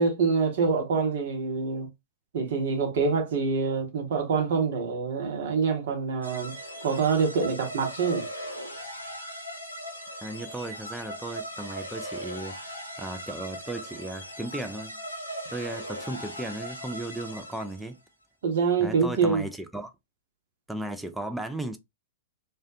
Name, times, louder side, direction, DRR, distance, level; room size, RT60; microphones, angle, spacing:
voice 1, 0.0-1.9 2.3-6.5 6.8-8.3 18.4-19.5, right 5 dB, 60° right, 0.9 m, -25 dB
sound 1, 6.2-17.9, equal, 90° left, 0.6 m, -39 dB
voice 2, 10.2-15.0 15.5-18.0 18.8-19.9 20.7-21.8, right 1 dB, 5° right, 0.3 m, -36 dB
2.3 x 2.1 x 2.5 m
figure-of-eight pair, 100°, 0 cm